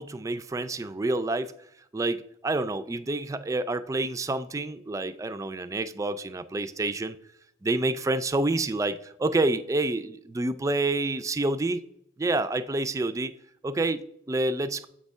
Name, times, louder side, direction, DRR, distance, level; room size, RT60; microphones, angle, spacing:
voice 1, 0.0-1.5 1.9-7.2 7.6-11.8 12.2-13.3 13.6-14.9, right 2 dB, 20° right, 0.3 m, -28 dB
7.5 x 3.5 x 5.3 m
head